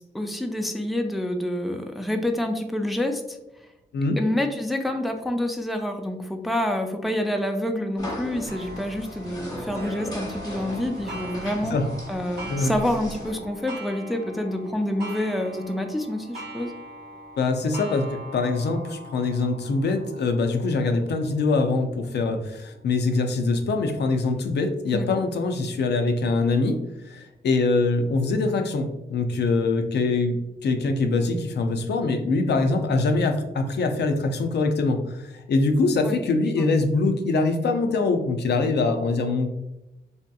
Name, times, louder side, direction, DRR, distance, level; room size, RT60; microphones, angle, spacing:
voice 1, 0.1-3.4 4.2-11.8 12.1-16.8 24.9-25.2 36.0-36.2 36.6-36.7, left 1 dB, ahead, 4 dB, 0.3 m, -27 dB
sound 1, 8.0-13.3, left 1 dB, 20° left, 0.9 m, -37 dB
Clock, 8.5-23.8 24.4-24.5 25.0-25.1 26.1-26.2, right 1 dB, 75° right, 0.8 m, -42 dB
voice 2, 17.4-39.5, left 3 dB, 80° left, 6 dB, 0.4 m, -23 dB
3.3 x 2.7 x 2.2 m, 0.94 s
wide cardioid pair, 90°, 17 cm